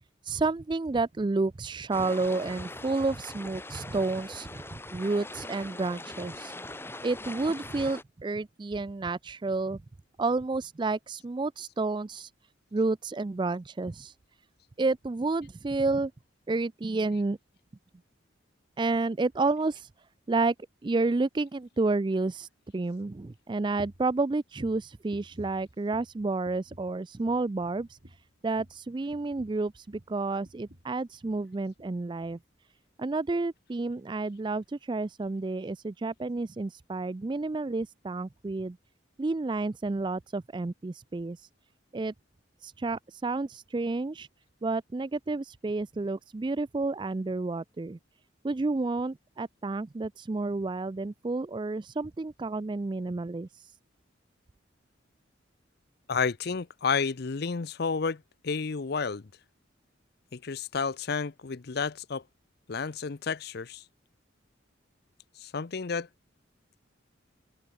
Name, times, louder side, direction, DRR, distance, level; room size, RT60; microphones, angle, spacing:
voice 1, 0.2-6.5 7.0-9.8 10.2-12.3 12.7-14.1 14.8-16.1 16.5-17.4 18.8-19.9 20.3-20.5 20.8-28.0 28.4-32.4 33.0-38.8 39.2-41.5 41.9-42.1 42.6-44.3 44.6-48.0 48.4-53.7, right 3 dB, 25° right, 0.4 m, -30 dB
sound 1, 1.9-8.0, left 2 dB, 10° left, 2.3 m, -42 dB
sound 2, 23.8-24.1 24.5-26.2 26.4-27.0 27.2-27.5 27.8-30.2 30.4-30.9 31.2-31.4 31.8-31.9, equal, 45° right, 4.3 m, -51 dB
voice 2, 56.1-59.2 60.3-62.2 62.7-63.8 65.4-66.1, left 5 dB, 55° left, 0.6 m, -31 dB
open air
head